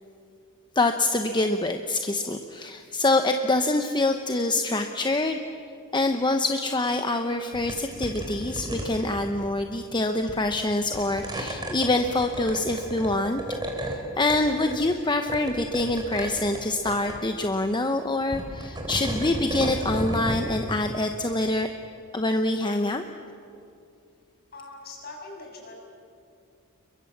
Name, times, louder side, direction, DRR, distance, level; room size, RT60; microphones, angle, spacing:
voice 1, 0.7-5.4 5.9-13.4 13.7-21.7 22.1-23.0, left 2 dB, 20° left, 6 dB, 0.9 m, -25 dB
sound 1, 7.5-7.8 8.0-9.5 10.3-10.6 10.9-14.0 14.3-14.9 15.3-16.6 16.9-17.2 18.2-20.4, right 1 dB, 20° right, 3.9 m, -33 dB
voice 2, 24.5-25.8, left 3 dB, 45° left, 0 dB, 7.0 m, -42 dB
29.5 x 23.0 x 7.3 m, 2.5 s
head